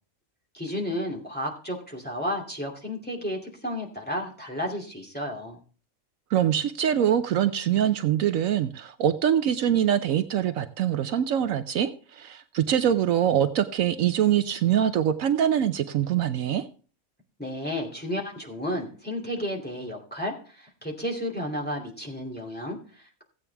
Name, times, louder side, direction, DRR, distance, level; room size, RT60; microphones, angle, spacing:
voice 1, 0.5-5.6 17.4-23.2, equal, 5° left, -1 dB, 2.5 m, -32 dB
voice 2, 6.3-16.6, right 10 dB, 70° right, 9 dB, 1.0 m, -24 dB
15.5 x 8.4 x 3.4 m, 0.40 s
omnidirectional pair, 1.5 m